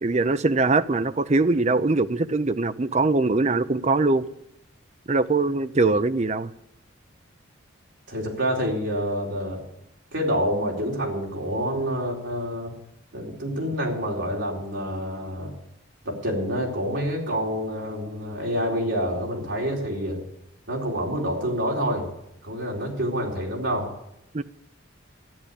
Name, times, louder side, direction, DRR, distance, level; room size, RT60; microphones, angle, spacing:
voice 1, 0.0-4.3 5.1-6.5 24.3-24.4, right 3 dB, 35° right, 12 dB, 0.5 m, -22 dB
voice 2, 8.1-9.6 10.1-12.7 13.1-15.5 16.0-20.2 20.7-22.1 22.4-23.9, equal, 65° right, -2 dB, 4.2 m, -27 dB
13.5 x 10.5 x 8.3 m, 0.82 s
head